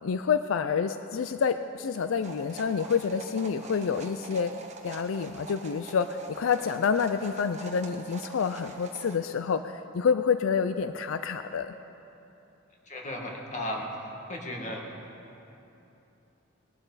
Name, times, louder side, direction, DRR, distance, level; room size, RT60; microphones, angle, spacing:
voice 1, 0.0-4.5 4.8-11.7, left 6 dB, 90° left, 10 dB, 0.4 m, -28 dB
sound 1, 2.2-9.2, right 3 dB, 35° right, 1.1 m, -45 dB
voice 2, 12.9-14.8, left 1 dB, 40° left, -1 dB, 2.0 m, -35 dB
20.0 x 11.5 x 4.1 m, 3.0 s
head